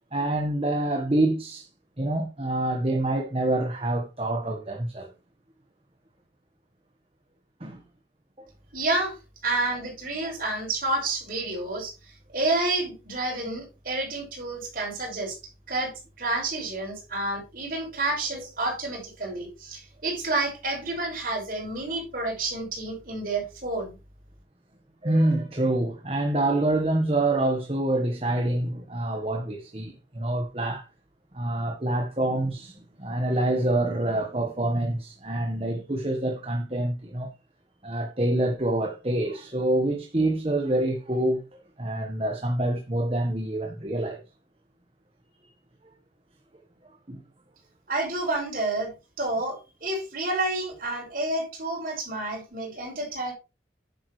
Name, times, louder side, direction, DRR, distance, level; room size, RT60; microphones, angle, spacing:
voice 1, 0.1-1.7 2.0-5.1 7.6-7.8 8.4-8.5 18.3-18.4 25.0-30.9 31.3-37.3 37.8-44.2 47.1-47.2, right 1 dB, 30° right, 1.4 m, -26 dB
voice 2, 8.7-9.1 9.4-11.9 12.3-15.3 15.7-23.9 47.9-48.9 49.2-53.3, right 2 dB, 50° right, 6.0 m, -29 dB
10.5 x 8.8 x 3.3 m
head